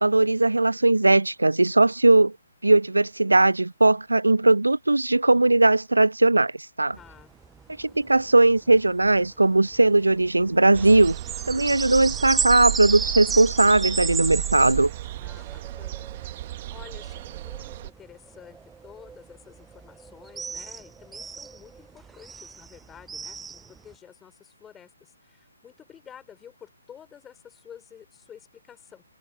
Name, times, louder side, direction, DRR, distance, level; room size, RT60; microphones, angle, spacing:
voice 1, 0.0-2.3 2.6-6.5 6.8-7.0 7.8-11.2 11.5-14.9, right 2 dB, 80° right, 0.8 m, -19 dB
voice 2, 7.0-7.3 15.2-16.1 16.7-29.0, left 8 dB, 10° left, 5.7 m, -50 dB
sound 1, 7.0-23.9, right 5 dB, 10° right, 0.5 m, -34 dB
sound 2, 10.7-17.9, right 15 dB, 35° right, 1.6 m, -34 dB
figure-of-eight pair, 140°, 0 cm